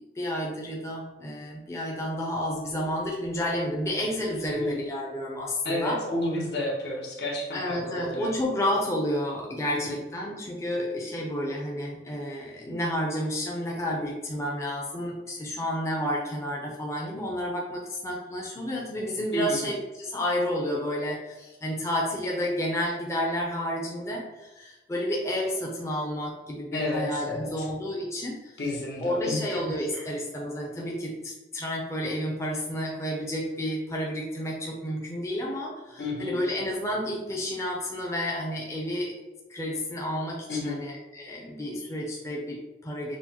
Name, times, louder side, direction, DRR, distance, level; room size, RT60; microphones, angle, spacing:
voice 1, 0.0-6.0 7.5-28.6 29.0-39.2 39.5-43.2, equal, 15° left, -2 dB, 0.5 m, -31 dB
voice 2, 5.6-8.3 9.8-10.0 19.3-19.7 26.7-27.7 28.6-29.6 29.9-30.1 36.0-36.4 40.5-40.8, left 1 dB, 65° left, -2 dB, 0.9 m, -31 dB
6.1 x 2.1 x 2.9 m, 1.1 s
head